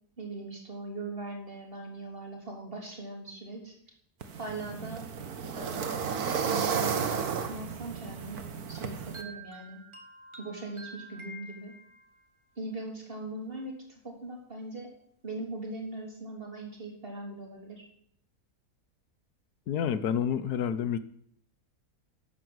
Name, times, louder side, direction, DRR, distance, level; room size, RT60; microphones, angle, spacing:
voice 1, 0.2-3.8 4.4-5.0 5.6-9.8 10.4-11.7 12.6-14.9 15.2-17.8, right 2 dB, 35° right, 1 dB, 3.6 m, -40 dB
sound 1, 4.2-9.2, right 6 dB, 70° right, 1.8 m, -33 dB
sound 2, 8.7-12.2, right 2 dB, 20° right, 1.9 m, -48 dB
voice 2, 19.7-21.0, left 8 dB, 80° left, 14 dB, 1.4 m, -29 dB
12.0 x 11.0 x 8.0 m, 0.66 s
omnidirectional pair, 1.6 m